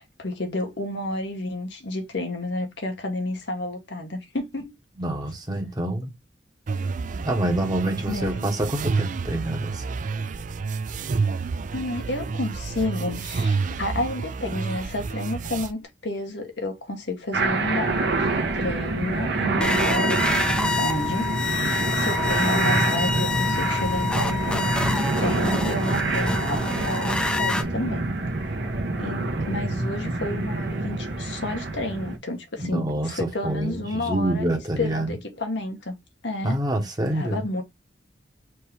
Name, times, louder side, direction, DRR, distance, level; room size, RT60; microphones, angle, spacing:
voice 1, 0.0-4.7 8.1-8.4 11.7-18.3 18.5-28.1 28.4-28.6 29.0-34.4 34.8-35.9 36.2-36.6 37.1-37.6, left 1 dB, 80° left, 1.2 m, -30 dB
voice 2, 5.0-6.1 7.2-9.8 32.6-35.1 36.4-37.4, right 1 dB, 20° right, 1.0 m, -26 dB
sound 1, 6.7-15.7, right 4 dB, 45° right, 0.4 m, -29 dB
sound 2, 17.3-32.2, right 2 dB, 65° right, 0.9 m, -26 dB
sound 3, 19.6-27.6, left 3 dB, 5° left, 0.5 m, -27 dB
4.5 x 2.9 x 3.4 m
head